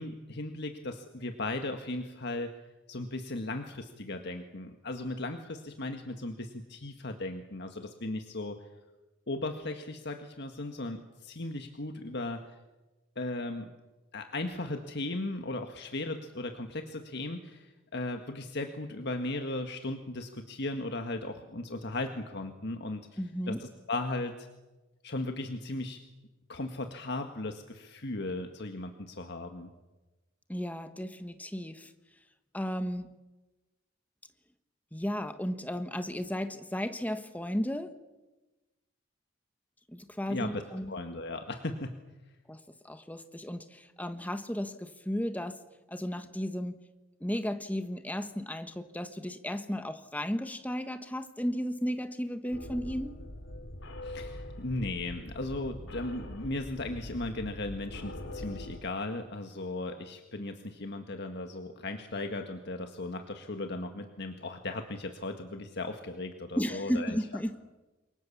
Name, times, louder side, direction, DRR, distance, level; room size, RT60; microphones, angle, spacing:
voice 1, 0.0-2.5 2.9-8.6 9.3-12.4 13.1-13.7 14.1-23.1 23.5-24.5 25.0-26.0 26.5-29.7 40.3-40.6 40.9-42.0 54.0-67.2, left 2 dB, 60° left, 5 dB, 1.7 m, -37 dB
voice 2, 23.2-23.6 30.5-31.9 32.5-33.1 34.9-38.0 39.9-40.9 42.5-45.6 45.9-46.8 47.2-53.1 66.6-67.6, equal, 10° left, 9 dB, 1.3 m, -34 dB
sound 1, 52.5-58.8, left 1 dB, 75° left, 3.0 m, -43 dB
28.5 x 23.0 x 7.2 m, 1.1 s
head